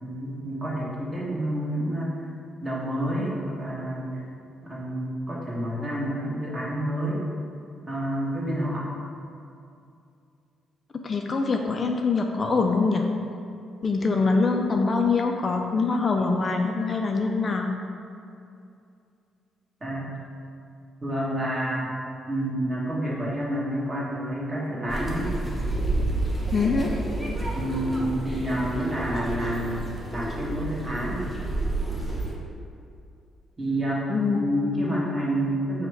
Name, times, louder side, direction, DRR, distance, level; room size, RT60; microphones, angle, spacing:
voice 1, 0.0-2.1 2.6-4.2 4.6-7.2 7.9-8.9 19.8-20.1 21.0-21.9 22.3-25.3 27.5-31.2 33.6-34.1 34.3-35.9, equal, 25° right, -6 dB, 1.2 m, -29 dB
voice 2, 11.0-13.1 13.8-17.7 26.5-26.9 34.1-34.4, left 4 dB, 40° left, 2 dB, 0.3 m, -24 dB
sound 1, 24.9-32.3, right 2 dB, 5° right, 0.8 m, -30 dB
5.2 x 2.2 x 4.6 m, 2.5 s
cardioid pair, 90°, 0 cm